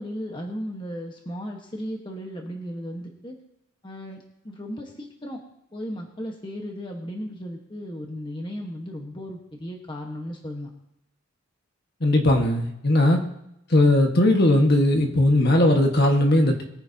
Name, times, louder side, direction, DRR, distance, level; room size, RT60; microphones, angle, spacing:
voice 1, 0.0-3.4 3.8-5.4 5.7-10.7, equal, 20° left, 1 dB, 1.3 m, -35 dB
voice 2, 12.0-13.2 13.7-16.6, left 1 dB, 50° left, 2 dB, 1.6 m, -18 dB
22.0 x 9.8 x 2.9 m, 0.83 s
head